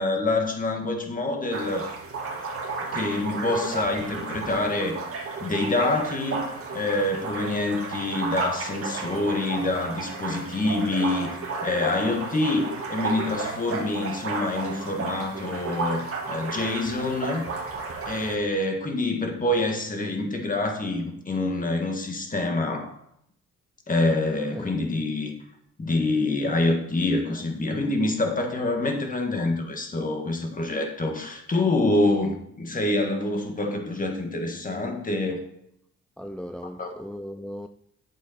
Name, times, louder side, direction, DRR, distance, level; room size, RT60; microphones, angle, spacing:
voice 1, 0.0-1.9 2.9-5.0 5.4-6.5 6.7-17.5 18.1-22.9 23.9-25.3 25.8-35.4 36.8-36.9, left 2 dB, 25° left, 1.8 m, -26 dB
sound 1, 1.5-18.4, right 3 dB, 50° right, 1.9 m, -33 dB
voice 2, 24.5-25.1 27.3-27.4 36.2-37.7, equal, 5° left, 0.3 m, -38 dB
8.7 x 7.1 x 4.3 m
cardioid pair, 90°, 30 cm